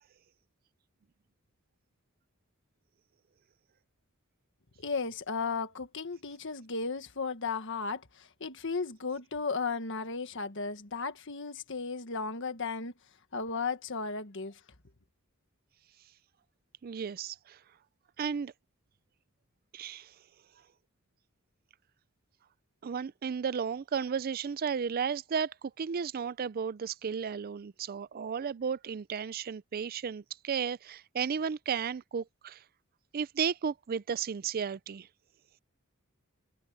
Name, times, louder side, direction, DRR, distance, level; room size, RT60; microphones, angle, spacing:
voice 1, 4.8-12.9 13.3-14.6, left 4 dB, 60° left, 1.6 m, -35 dB
voice 2, 16.8-17.6 18.2-18.5 19.7-20.1 22.8-32.6 33.1-35.1, right 6 dB, 45° right, 0.4 m, -34 dB
head